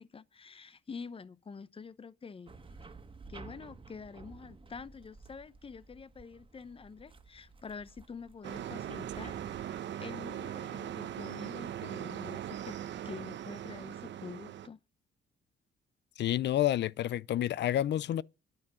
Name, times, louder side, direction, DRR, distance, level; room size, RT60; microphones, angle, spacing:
voice 1, 0.0-2.9 3.3-12.8 13.0-14.8, left 5 dB, 30° left, 0.8 m, -47 dB
sound 1, 2.5-9.8, right 4 dB, 25° right, 1.7 m, -52 dB
sound 2, 8.4-14.7, right 10 dB, 65° right, 1.0 m, -40 dB
voice 2, 16.2-18.2, left 12 dB, 60° left, 0.5 m, -29 dB
10.5 x 9.4 x 6.2 m
cardioid pair, 90°, 20 cm